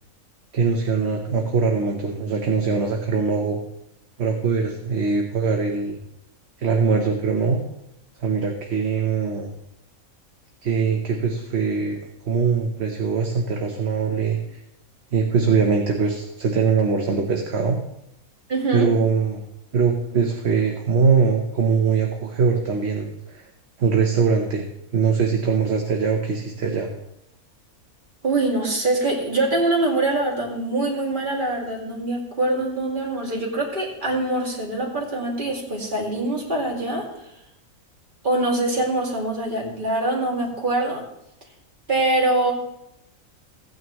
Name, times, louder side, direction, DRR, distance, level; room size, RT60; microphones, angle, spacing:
voice 1, 0.5-3.6 4.2-6.0 6.6-7.6 8.2-9.5 10.6-12.0 12.2-14.4 15.1-17.8 18.7-19.4 19.7-23.5 23.8-24.6 24.9-26.9, right 5 dB, 50° right, 2 dB, 1.2 m, -22 dB
voice 2, 18.5-18.9 28.2-37.1 38.2-41.0 41.9-42.5, right 2 dB, 35° right, -3 dB, 2.5 m, -23 dB
16.0 x 9.4 x 3.1 m, 0.81 s
omnidirectional pair, 1.5 m